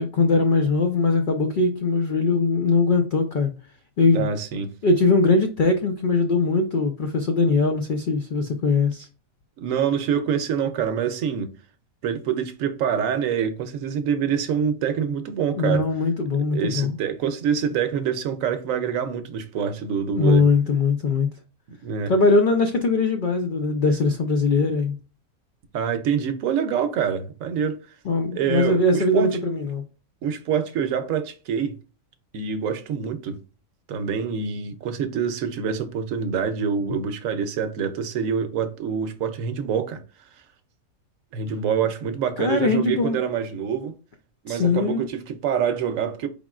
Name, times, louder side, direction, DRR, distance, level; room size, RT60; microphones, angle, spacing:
voice 1, 0.0-3.5 4.0-4.3 4.8-9.1 15.6-17.0 20.2-21.3 22.1-25.0 28.0-29.8 42.4-43.2 44.5-45.0, left 3 dB, 80° left, 0.4 m, -21 dB
voice 2, 4.1-4.7 9.6-11.5 12.0-15.8 16.5-20.4 21.8-22.1 25.7-27.8 28.3-29.4 30.2-31.7 32.3-33.4 33.9-40.0 41.3-43.9 44.4-46.3, right 7 dB, 70° right, 0.9 m, -26 dB
4.8 x 3.6 x 2.3 m
omnidirectional pair, 1.5 m